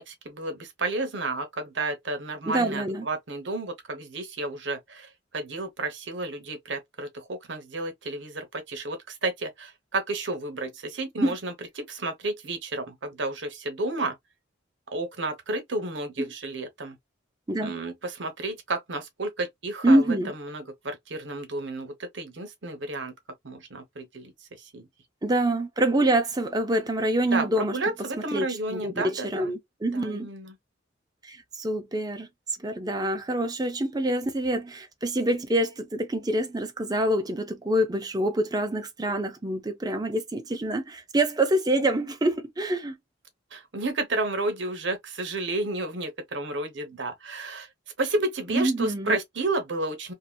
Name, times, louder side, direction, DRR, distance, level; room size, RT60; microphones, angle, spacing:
voice 1, 0.0-14.1 14.9-17.0 17.6-23.1 23.4-24.3 24.6-24.9 27.3-29.5 29.9-30.6 43.5-47.7 48.0-50.1, right 2 dB, 65° right, 0.9 m, -31 dB
voice 2, 2.5-3.1 11.2-11.4 17.5-17.7 19.8-20.3 25.2-27.8 28.3-30.3 31.2-32.3 32.6-43.0 48.5-49.2, right 1 dB, 20° right, 0.5 m, -26 dB
2.8 x 2.6 x 2.3 m
head